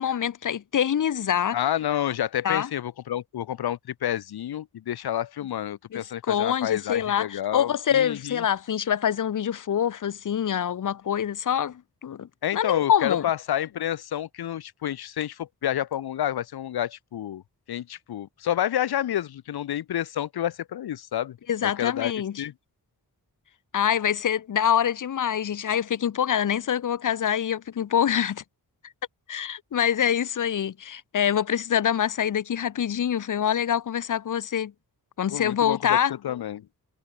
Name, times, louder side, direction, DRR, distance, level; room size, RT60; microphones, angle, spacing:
voice 1, 0.0-1.6 2.4-2.7 5.9-6.0 6.3-13.2 21.5-22.4 23.7-28.4 29.3-34.7 35.2-36.1, left 9 dB, 55° left, 0.8 m, -25 dB
voice 2, 1.5-8.4 12.4-17.4 17.7-21.4 21.6-22.1 22.4-22.5 35.3-36.0 36.2-36.7, left 11 dB, 90° left, 0.8 m, -29 dB
wide cardioid pair, 120°, 37 cm